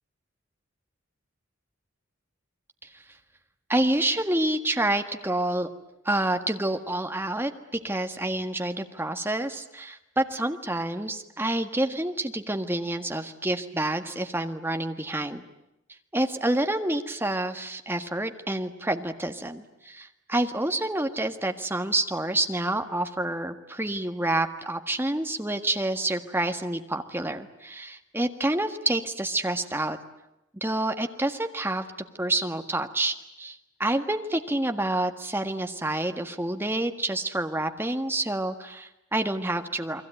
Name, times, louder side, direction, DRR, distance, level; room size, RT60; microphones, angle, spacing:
voice 1, 3.7-5.7 6.0-15.4 16.1-30.0 30.5-31.8 32.2-40.0, right 1 dB, 10° right, 6 dB, 1.6 m, -28 dB
29.5 x 22.0 x 9.1 m, 0.89 s
head